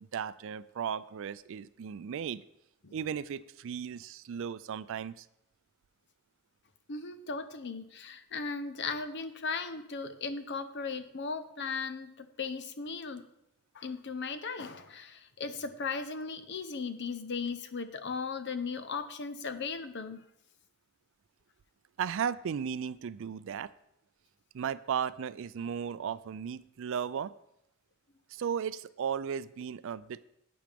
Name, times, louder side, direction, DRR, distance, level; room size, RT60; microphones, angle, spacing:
voice 1, 0.0-2.4 2.9-5.3 22.0-23.7 24.5-27.3 28.3-30.2, right 7 dB, 65° right, 17 dB, 0.4 m, -35 dB
voice 2, 6.9-13.2 13.7-20.2, left 4 dB, 55° left, 10 dB, 0.8 m, -37 dB
10.5 x 8.7 x 3.5 m, 0.80 s
head